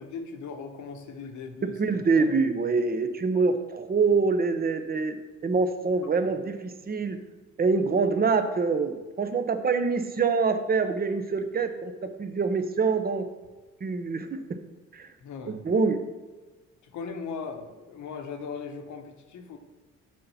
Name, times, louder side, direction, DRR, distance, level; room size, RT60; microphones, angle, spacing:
voice 1, 0.0-2.3 15.2-15.6 16.8-19.6, left 5 dB, 70° left, 6 dB, 1.0 m, -39 dB
voice 2, 1.6-5.2 5.4-7.2 7.6-13.3 13.8-14.4 14.9-15.1 15.5-16.0, right 4 dB, 30° right, 8 dB, 0.7 m, -25 dB
6.4 x 4.2 x 5.6 m, 1.3 s
cardioid pair, 90°, 30 cm